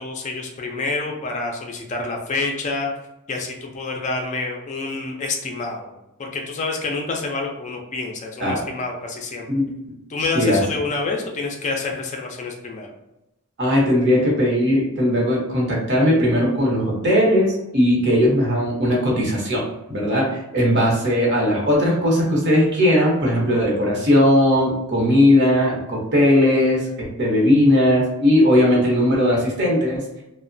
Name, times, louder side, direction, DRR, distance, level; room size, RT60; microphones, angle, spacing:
voice 1, 0.0-2.9 3.3-5.9 6.2-9.5 10.1-12.9, left 3 dB, 35° left, 2 dB, 0.4 m, -27 dB
voice 2, 13.6-19.6 19.9-26.9 27.2-30.2, left 1 dB, 55° right, -3 dB, 0.9 m, -18 dB
3.0 x 2.1 x 2.5 m, 0.92 s
head